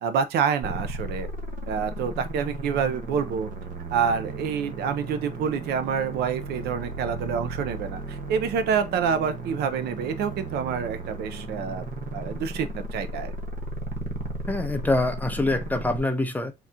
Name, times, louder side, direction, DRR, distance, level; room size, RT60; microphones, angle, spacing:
voice 1, 0.0-1.3 1.7-3.5 3.9-11.8 12.1-13.3, right 7 dB, 75° right, 0.7 m, -27 dB
sound 1, 0.6-16.0, right 2 dB, 50° right, 1.2 m, -35 dB
voice 2, 14.5-16.5, left 2 dB, 10° left, 0.7 m, -25 dB
4.0 x 2.9 x 3.6 m
cardioid pair, 110°, 17 cm